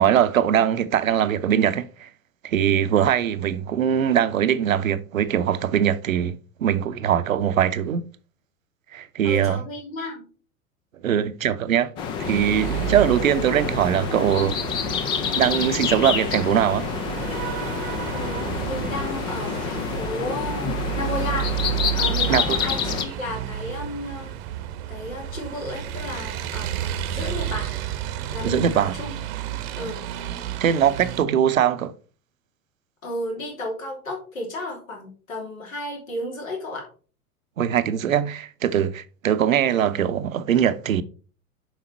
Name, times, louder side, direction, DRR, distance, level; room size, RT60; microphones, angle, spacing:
voice 1, 0.0-2.1 2.4-8.0 8.9-9.6 11.0-11.9 12.3-14.6 15.3-16.9 22.3-22.4 28.4-28.9 30.6-31.9 37.6-41.0, right 9 dB, 65° right, 0.7 m, -21 dB
voice 2, 9.2-10.2 18.1-21.5 22.0-24.3 24.9-27.8 28.3-29.1 29.8-30.1 33.0-36.9, left 1 dB, 65° left, 3.5 m, -33 dB
sound 1, 12.0-23.0, left 6 dB, 10° left, 0.3 m, -28 dB
sound 2, 12.2-31.2, right 12 dB, 40° right, 0.9 m, -31 dB
7.3 x 5.6 x 4.3 m
figure-of-eight pair, 90°, 43 cm